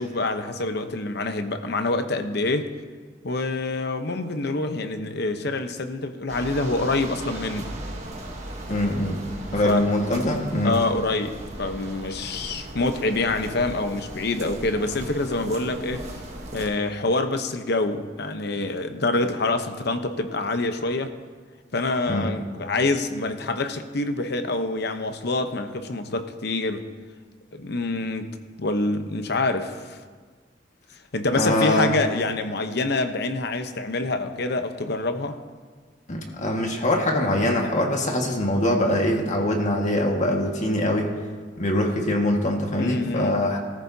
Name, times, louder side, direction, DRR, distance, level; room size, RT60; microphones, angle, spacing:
voice 1, 0.0-2.7 3.2-7.7 9.6-9.8 10.6-16.0 16.5-21.1 21.7-26.8 27.5-28.3 28.6-30.0 31.1-35.4 42.8-43.4, left 2 dB, 65° left, 8 dB, 0.9 m, -26 dB
sound 1, 6.3-16.7, right 1 dB, 40° right, 1.8 m, -37 dB
voice 2, 8.7-9.2 9.5-10.8 22.1-22.3 31.3-31.9 36.1-41.1 41.6-43.6, left 1 dB, 40° left, 1 dB, 1.7 m, -23 dB
19.0 x 14.0 x 2.8 m, 1.5 s
head